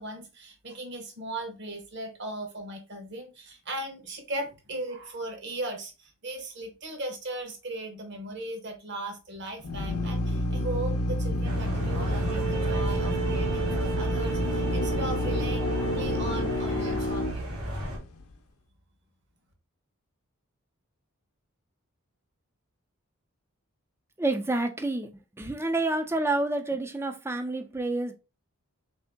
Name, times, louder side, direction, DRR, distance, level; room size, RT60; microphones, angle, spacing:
voice 1, 0.0-17.6, right 1 dB, 50° right, 1.0 m, -38 dB
Drill, 9.6-18.2, left 1 dB, 90° left, 0.6 m, -29 dB
sound 1, 11.4-18.0, equal, 85° right, 1.3 m, -35 dB
sound 2, 12.0-17.0, right 9 dB, 30° right, 0.7 m, -35 dB
voice 2, 24.2-25.1 25.4-28.1, right 2 dB, 10° right, 0.3 m, -28 dB
3.5 x 2.8 x 3.4 m
head